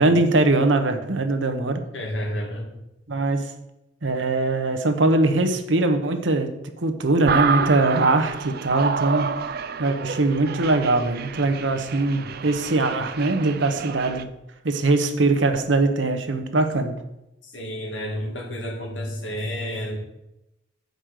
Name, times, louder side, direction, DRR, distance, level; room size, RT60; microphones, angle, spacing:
voice 1, 0.0-1.8 3.1-3.5 4.0-6.5 6.8-9.3 9.8-14.3 14.6-16.9, right 2 dB, 85° right, 7 dB, 1.0 m, -21 dB
voice 2, 1.9-2.7 17.4-20.0, equal, 80° left, 1 dB, 2.2 m, -30 dB
sound 1, 7.3-14.2, right 6 dB, 55° right, 0.5 m, -29 dB
9.0 x 5.4 x 6.5 m, 0.92 s
head